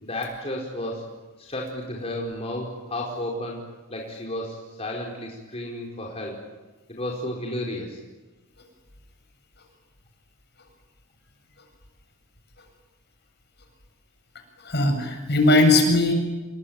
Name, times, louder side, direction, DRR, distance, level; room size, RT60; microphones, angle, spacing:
voice 1, 0.0-1.1 1.4-3.6 3.9-6.4 6.9-8.0, left 1 dB, 30° left, -1 dB, 4.8 m, -32 dB
voice 2, 14.6-16.1, left 2 dB, 55° left, 5 dB, 7.6 m, -19 dB
29.5 x 22.0 x 9.2 m, 1.2 s
head